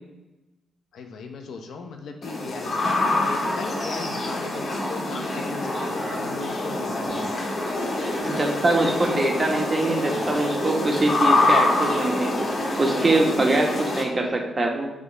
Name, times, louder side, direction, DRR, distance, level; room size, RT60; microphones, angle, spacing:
voice 1, 0.9-7.5, left 4 dB, 70° left, 5 dB, 0.9 m, -37 dB
sound 1, 2.2-14.0, left 2 dB, 50° left, 2.0 m, -26 dB
sound 2, 3.2-13.4, equal, 5° right, 2.3 m, -38 dB
voice 2, 8.2-12.5 12.8-14.9, right 2 dB, 35° right, 2 dB, 1.8 m, -23 dB
9.6 x 3.8 x 5.4 m, 1.0 s
hypercardioid pair, 40°, 0 cm